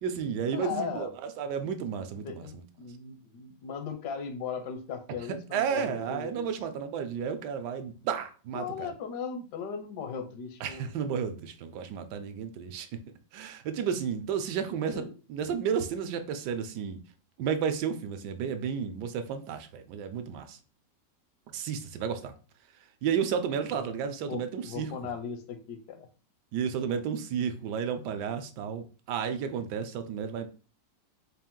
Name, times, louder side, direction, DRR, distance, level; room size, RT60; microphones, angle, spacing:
voice 1, 0.0-2.6 5.5-8.9 10.6-12.9 13.3-15.0 15.3-17.0 17.4-20.6 21.5-22.3 22.7-24.9 26.5-30.5, right 7 dB, 75° right, 1.1 m, -32 dB
voice 2, 0.5-1.1 2.2-6.5 8.5-10.9 14.9-15.1 23.7-23.9 24.3-26.1, left 6 dB, 75° left, 1.2 m, -38 dB
4.1 x 2.5 x 3.6 m
omnidirectional pair, 1.9 m